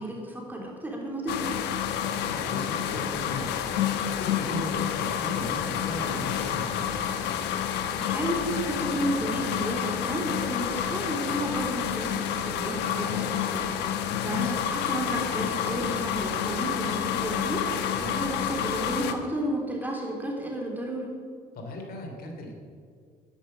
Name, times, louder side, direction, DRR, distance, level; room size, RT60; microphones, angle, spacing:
voice 1, 0.0-1.6 8.0-17.7 18.0-21.1, right 1 dB, 10° right, -1 dB, 3.5 m, -32 dB
sound 1, 1.3-19.1, left 9 dB, 85° left, 1.1 m, -29 dB
voice 2, 2.0-3.7 4.0-7.1 14.2-14.5 17.9-18.1 21.5-22.5, left 1 dB, 65° left, 2 dB, 2.9 m, -37 dB
11.5 x 10.5 x 7.8 m, 2.1 s
cardioid pair, 110°, 17 cm